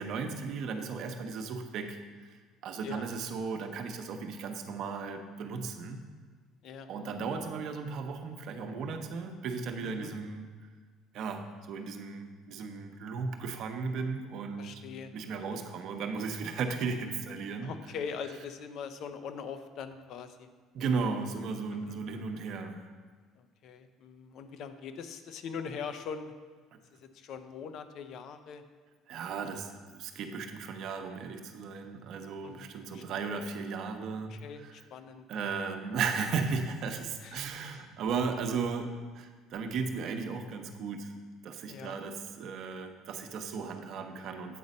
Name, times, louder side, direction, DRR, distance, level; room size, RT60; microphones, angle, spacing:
voice 1, 0.0-2.4 2.6-6.0 6.9-10.5 11.1-14.8 15.1-17.7 20.7-22.9 29.1-34.3 34.6-34.7 35.3-41.1 41.4-44.6, right 5 dB, 65° right, 6 dB, 0.8 m, -35 dB
voice 2, 6.6-7.2 9.8-10.1 14.6-15.4 17.6-20.5 21.7-22.0 23.3-26.3 26.9-28.6 32.4-33.3 34.3-35.5 37.2-37.5 37.7-37.8 41.7-42.0, left 6 dB, 60° left, 9 dB, 0.6 m, -42 dB
8.4 x 4.0 x 5.4 m, 1.5 s
supercardioid pair, 85°, 0 cm